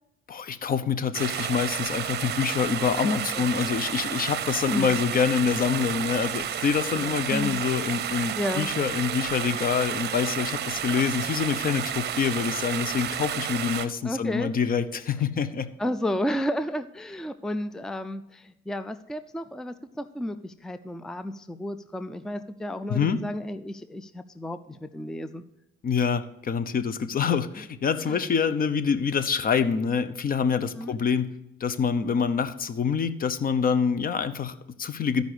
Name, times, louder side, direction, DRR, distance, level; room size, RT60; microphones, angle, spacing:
voice 1, 0.3-15.7 22.9-23.2 25.8-31.3 31.6-35.2, left 6 dB, 45° left, 12 dB, 0.8 m, -26 dB
sound 1, 1.1-13.9, right 9 dB, 55° right, 0.7 m, -31 dB
voice 2, 6.9-7.6 8.3-8.7 14.0-14.5 15.8-25.4 28.0-28.2 30.7-31.0, equal, 5° left, 11 dB, 0.4 m, -32 dB
13.0 x 5.2 x 4.9 m, 0.90 s
cardioid pair, 90°, 21 cm